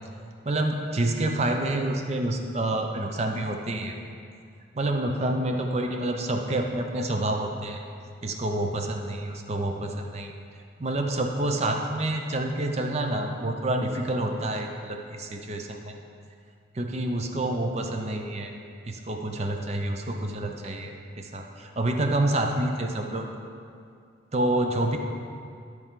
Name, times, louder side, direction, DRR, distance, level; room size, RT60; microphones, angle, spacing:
voice 1, 0.4-4.0 4.7-7.8 8.2-10.3 10.8-15.9 16.7-18.5 18.8-23.3 24.3-25.0, right 1 dB, 35° right, 3 dB, 0.6 m, -28 dB
12.5 x 4.6 x 3.7 m, 2.4 s
head